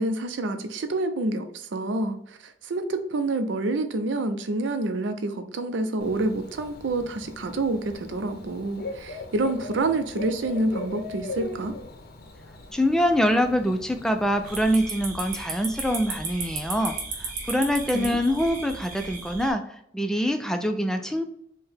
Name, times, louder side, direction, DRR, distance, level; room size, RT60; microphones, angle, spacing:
voice 1, 0.0-11.8 17.9-18.2, right 2 dB, 90° right, 7 dB, 0.5 m, -28 dB
Bird / Cricket, 6.0-14.6, left 3 dB, 55° left, 0.6 m, -40 dB
voice 2, 12.7-19.6 19.9-21.3, equal, 5° left, 5 dB, 0.3 m, -24 dB
sound 1, 14.5-19.5, right 3 dB, 50° right, 0.8 m, -35 dB
4.5 x 2.1 x 3.4 m, 0.70 s
head